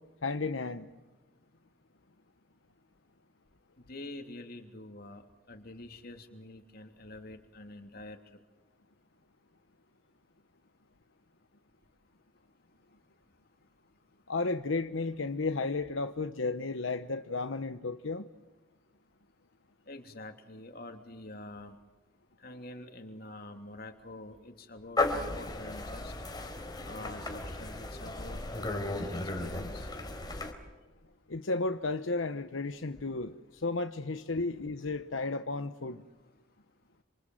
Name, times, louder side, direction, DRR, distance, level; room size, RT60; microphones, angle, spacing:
voice 1, 0.2-0.9 14.3-18.3 31.3-36.0, left 3 dB, 80° left, 8 dB, 1.0 m, -33 dB
voice 2, 3.8-5.2 5.5-8.2 19.9-21.8 22.4-26.1 26.8-29.9 34.3-34.5, left 2 dB, 50° left, 5 dB, 3.1 m, -46 dB
sound 1, 25.0-30.5, left 2 dB, 20° left, 3.7 m, -35 dB
28.5 x 27.0 x 7.8 m, 1.2 s
head